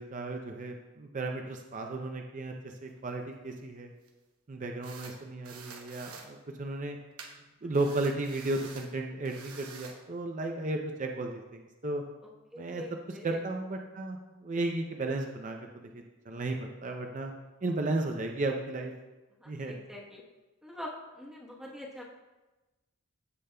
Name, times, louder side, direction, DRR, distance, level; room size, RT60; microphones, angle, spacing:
voice 1, 0.0-3.9 4.5-7.0 7.6-12.0 12.6-12.8 13.2-15.6 16.3-17.3 17.6-18.9 19.5-19.7, right 2 dB, 35° right, 3 dB, 0.5 m, -34 dB
sound 1, 2.7-3.0 4.1-4.2 4.8-5.2 5.4-6.3 7.2-7.3 7.7-8.9 9.2-10.0, right 5 dB, 80° right, 0.9 m, -48 dB
voice 2, 12.5-13.4 19.4-20.2 20.6-22.0, left 1 dB, ahead, -4 dB, 1.0 m, -44 dB
15.0 x 5.1 x 2.2 m, 1.1 s
head